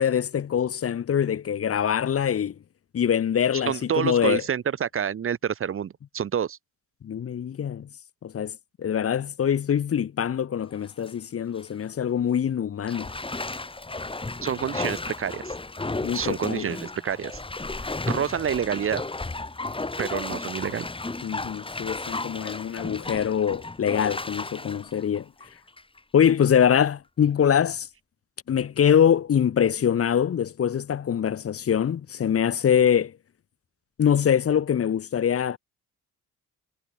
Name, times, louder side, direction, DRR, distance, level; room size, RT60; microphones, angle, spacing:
voice 1, 0.0-2.5 2.9-4.4 7.0-7.9 8.2-13.1 16.0-16.7 21.2-25.2 26.1-27.9 28.5-33.2 34.0-35.6, left 8 dB, 50° left, 1.6 m, -24 dB
voice 2, 3.7-6.6 14.4-15.5 16.1-17.4 18.1-19.0 20.0-20.8, right 8 dB, 45° right, 1.2 m, -28 dB
Bathtub (filling or washing), 10.7-11.1 11.6-11.7 12.9-26.0 26.4-26.5, left 2 dB, 15° left, 4.0 m, -34 dB
cardioid pair, 90°, 30 cm